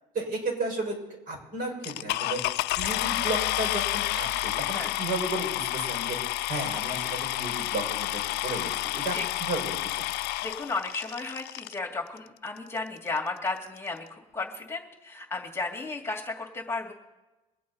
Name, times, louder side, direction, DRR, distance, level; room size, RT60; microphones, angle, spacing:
voice 1, 0.1-1.0 1.3-2.4 2.8-10.1, right 2 dB, 60° right, 1 dB, 6.0 m, -33 dB
sound 1, 1.8-11.8 12.6-12.7 13.2-13.3 13.5-13.8, left 18 dB, 85° left, 0.4 m, -30 dB
voice 2, 10.4-16.9, left 3 dB, 15° left, -1 dB, 2.3 m, -34 dB
24.0 x 8.4 x 4.2 m, 1.1 s
cardioid pair, 110°, 17 cm